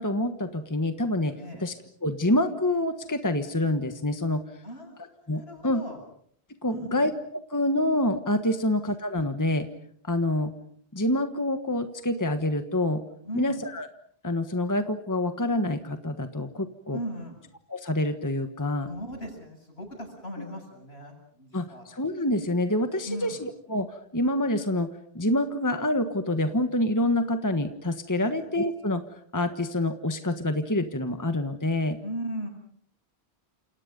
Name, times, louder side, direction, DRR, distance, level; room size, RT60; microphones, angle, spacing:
voice 1, 0.0-1.7 2.0-4.4 5.3-5.8 6.6-7.1 7.5-9.7 10.0-10.5 10.9-13.0 13.3-13.9 14.2-17.0 17.7-18.9 21.5-29.0 29.3-32.0, left 1 dB, 15° left, 8 dB, 1.4 m, -27 dB
voice 2, 1.4-1.7 4.6-6.0 6.7-7.1 13.2-13.6 16.9-17.4 18.9-21.9 23.0-23.5 28.2-28.4 32.0-32.5, equal, 70° left, 4 dB, 8.1 m, -38 dB
30.0 x 28.0 x 5.3 m, 0.63 s
omnidirectional pair, 1.1 m